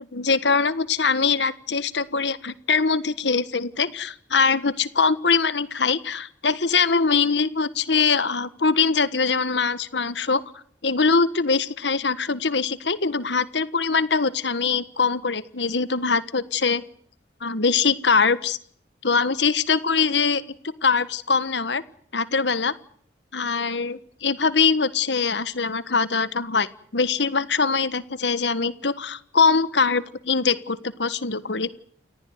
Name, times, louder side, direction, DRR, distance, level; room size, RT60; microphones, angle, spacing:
voice 1, 0.1-10.4 10.8-16.8 17.4-18.6 19.0-20.4 20.8-21.8 22.1-22.7 23.3-26.7 26.9-31.7, left 5 dB, 85° left, 14 dB, 1.5 m, -22 dB
29.5 x 15.0 x 9.5 m, 0.62 s
head